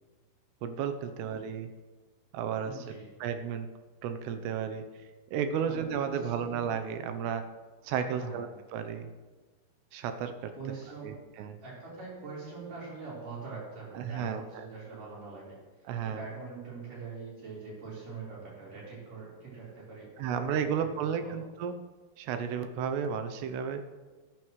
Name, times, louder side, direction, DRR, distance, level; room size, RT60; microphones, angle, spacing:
voice 1, 0.6-1.7 2.3-2.9 3.2-3.7 4.0-4.8 5.3-7.4 7.8-9.1 9.9-10.5 11.0-11.6 13.9-14.7 15.9-16.2 20.2-21.8 22.2-23.8, right 7 dB, 80° right, 7 dB, 2.8 m, -33 dB
voice 2, 2.6-3.1 5.6-6.6 8.0-8.4 10.5-11.1 11.6-15.6 16.0-20.1 20.4-20.7 21.0-21.4, right 4 dB, 50° right, -7 dB, 5.6 m, -43 dB
19.0 x 9.0 x 3.2 m, 1.3 s
omnidirectional pair, 4.9 m